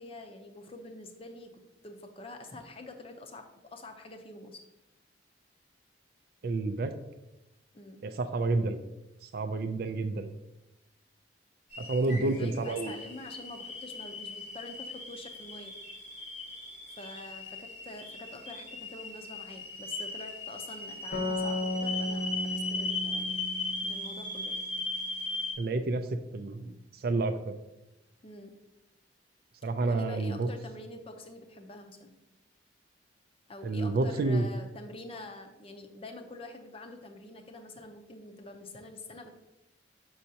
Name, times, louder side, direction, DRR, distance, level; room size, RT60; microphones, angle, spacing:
voice 1, 0.0-1.5 1.8-4.6 7.7-8.0 12.0-15.8 16.9-23.4 23.8-24.6 28.2-28.6 29.8-32.1 33.5-39.3, left 2 dB, 30° left, 5 dB, 0.6 m, -46 dB
voice 2, 6.4-6.9 8.0-8.8 9.2-10.3 11.8-12.9 25.6-26.1 26.3-27.5 29.6-30.5 33.6-34.5, right 3 dB, 55° right, 8 dB, 0.4 m, -29 dB
sound 1, 11.7-25.5, left 2 dB, 90° left, 1.8 m, -38 dB
sound 2, 21.1-24.6, left 1 dB, 50° left, 0.9 m, -35 dB
6.2 x 5.6 x 2.8 m, 0.95 s
head